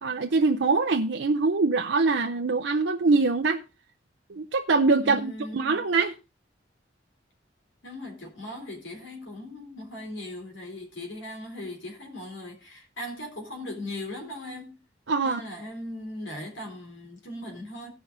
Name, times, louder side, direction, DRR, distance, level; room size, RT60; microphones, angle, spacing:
voice 1, 0.0-3.6 4.3-6.1 15.1-15.4, right 3 dB, 70° right, 0.6 m, -23 dB
voice 2, 5.0-5.9 7.8-14.8 15.2-17.9, left 1 dB, 85° left, 3.5 m, -39 dB
16.5 x 5.7 x 3.9 m
head